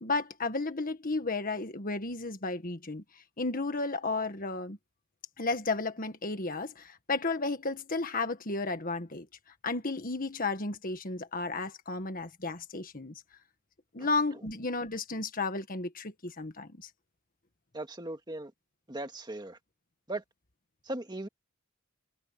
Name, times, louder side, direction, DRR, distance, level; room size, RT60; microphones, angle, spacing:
voice 1, 0.0-3.0 3.4-4.8 5.4-9.3 9.6-13.1 13.9-16.9, left 3 dB, 40° left, 1.7 m, -33 dB
voice 2, 17.7-18.5 18.9-19.6 20.1-20.2 20.9-21.3, right 2 dB, 20° right, 2.0 m, -38 dB
head